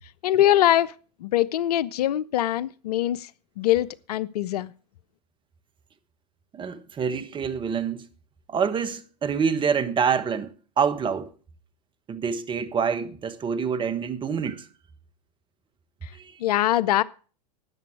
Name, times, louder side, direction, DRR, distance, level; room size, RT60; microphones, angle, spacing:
voice 1, 0.2-0.9 1.2-3.3 3.6-4.7 16.4-17.0, left 13 dB, 70° left, 0.6 m, -22 dB
voice 2, 6.5-8.1 8.5-11.3 12.1-14.7 16.1-16.4, right 6 dB, 25° right, 1.4 m, -26 dB
13.5 x 9.4 x 4.7 m
hypercardioid pair, 100°, 21 cm